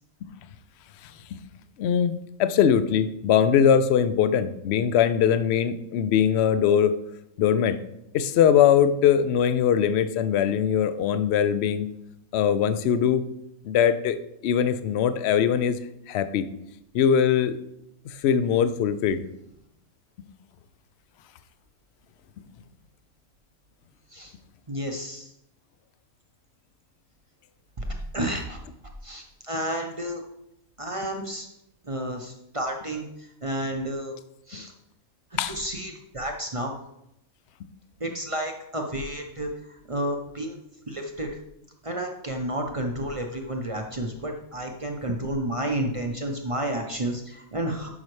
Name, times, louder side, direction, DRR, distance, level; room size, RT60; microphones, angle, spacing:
voice 1, 1.0-1.4 1.8-6.9 7.4-7.8 8.1-11.9 12.3-13.2 13.6-14.2 14.4-15.8 16.1-16.4 16.9-17.6 18.1-19.3 34.5-34.6 35.4-35.6, left 8 dB, 65° left, 12 dB, 0.7 m, -21 dB
voice 2, 24.7-25.3 27.8-27.9 28.1-28.6 29.0-30.2 30.8-31.5 31.8-34.2 34.5-34.7 35.5-36.7 38.0-40.6 40.9-41.3 41.8-47.9, right 1 dB, 30° right, 2 dB, 0.6 m, -31 dB
11.0 x 5.5 x 3.2 m, 0.82 s
omnidirectional pair, 1.5 m